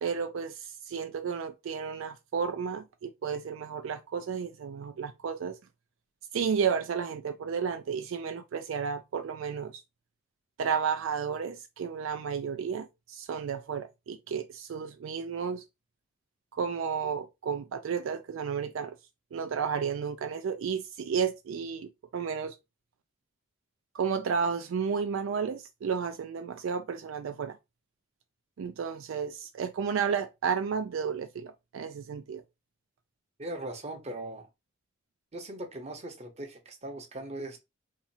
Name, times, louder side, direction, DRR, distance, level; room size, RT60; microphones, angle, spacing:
voice 1, 0.0-5.6 6.3-9.8 10.6-15.6 16.5-19.0 19.3-22.6 23.9-27.6 28.6-32.4, right 6 dB, 70° right, 0.3 m, -32 dB
voice 2, 33.4-34.5 35.3-37.6, right 1 dB, 30° right, 0.8 m, -39 dB
2.8 x 2.4 x 4.1 m
head